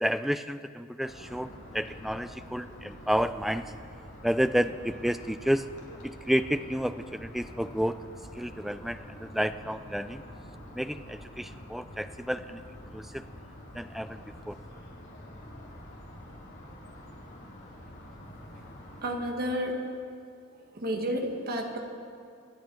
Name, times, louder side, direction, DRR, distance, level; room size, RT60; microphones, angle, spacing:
voice 1, 0.0-3.7 4.2-5.7 6.0-8.0 8.3-10.2 10.7-12.6 12.9-13.2 13.7-14.6, equal, ahead, 11 dB, 0.3 m, -30 dB
sound 1, 1.0-19.0, equal, 55° left, 3.0 m, -47 dB
voice 2, 19.0-19.8 20.5-21.8, equal, 45° right, 2 dB, 1.6 m, -31 dB
25.5 x 9.0 x 4.6 m, 2.3 s
head